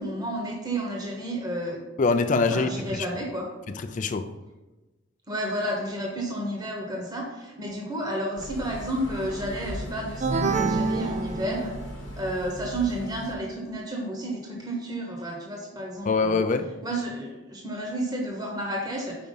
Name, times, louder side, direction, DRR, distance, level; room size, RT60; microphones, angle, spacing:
voice 1, 0.0-1.8 2.5-3.5 5.3-11.7 12.2-16.4 16.8-19.2, right 1 dB, 20° right, 0.9 m, -31 dB
voice 2, 2.0-3.1 3.9-4.3 16.0-16.7, left 4 dB, 40° left, 0.3 m, -24 dB
sound 1, 8.4-13.3, equal, 65° left, 0.9 m, -38 dB
sound 2, 10.2-12.0, right 3 dB, 35° right, 0.4 m, -27 dB
5.1 x 4.6 x 5.5 m
head